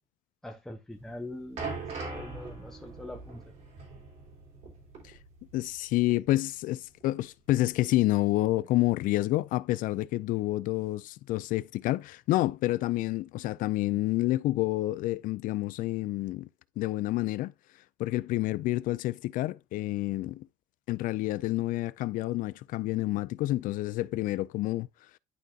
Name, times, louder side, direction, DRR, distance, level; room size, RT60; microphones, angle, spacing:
voice 1, 0.4-3.4, left 1 dB, 5° left, 0.9 m, -43 dB
sound 1, 1.0-5.8 6.1-6.3 7.0-7.1, right 4 dB, 50° right, 3.3 m, -41 dB
voice 2, 5.5-16.5 16.8-17.5 18.0-20.5 20.9-24.9, left 17 dB, 70° left, 0.4 m, -28 dB
11.5 x 4.0 x 2.4 m
cardioid pair, 165°, 14 cm